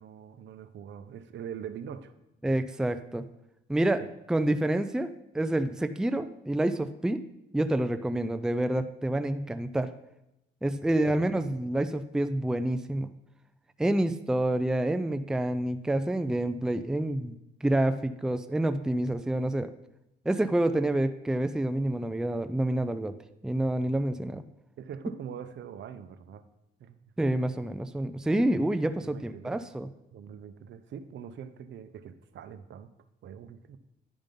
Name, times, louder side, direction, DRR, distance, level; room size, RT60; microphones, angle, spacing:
voice 1, 0.0-2.1 4.0-4.1 10.8-11.4 24.8-26.4 26.8-27.1 28.7-29.6 30.1-32.9 33.2-33.8, right 8 dB, 65° right, 12 dB, 0.7 m, -43 dB
voice 2, 2.4-3.3 3.7-4.0 4.3-7.2 7.5-9.9 10.6-13.1 13.8-17.3 17.6-19.7 20.3-23.1 23.4-24.4 27.2-29.9, right 1 dB, 5° right, 10 dB, 0.4 m, -28 dB
10.5 x 5.3 x 5.3 m, 0.87 s
cardioid pair, 90°, 20 cm